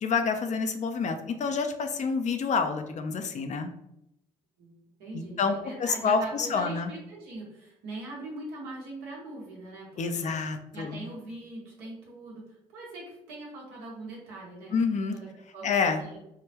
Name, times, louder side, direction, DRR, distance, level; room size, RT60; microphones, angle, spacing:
voice 1, 0.0-3.7 5.1-6.9 10.0-11.1 14.7-15.2 15.6-16.1, left 5 dB, 50° left, 7 dB, 0.5 m, -28 dB
voice 2, 4.6-10.3 10.7-14.8 15.1-16.2, right 2 dB, 80° right, -3 dB, 1.2 m, -42 dB
3.6 x 2.1 x 2.9 m, 0.81 s
supercardioid pair, 60°, 16 cm